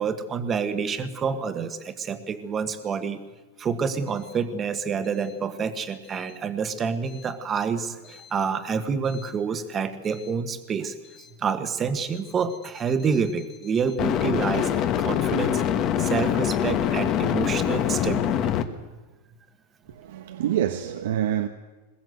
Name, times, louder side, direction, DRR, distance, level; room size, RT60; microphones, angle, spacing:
voice 1, 0.0-3.3 3.6-10.9 11.4-15.6 16.0-18.6, right 6 dB, 20° right, 1.6 m, -28 dB
sound 1, 9.1-9.3 14.0-18.6, left 9 dB, 35° left, 1.5 m, -24 dB
voice 2, 19.9-21.5, right 11 dB, 75° right, 1.2 m, -26 dB
21.5 x 20.5 x 8.0 m
supercardioid pair, 150°, 0 cm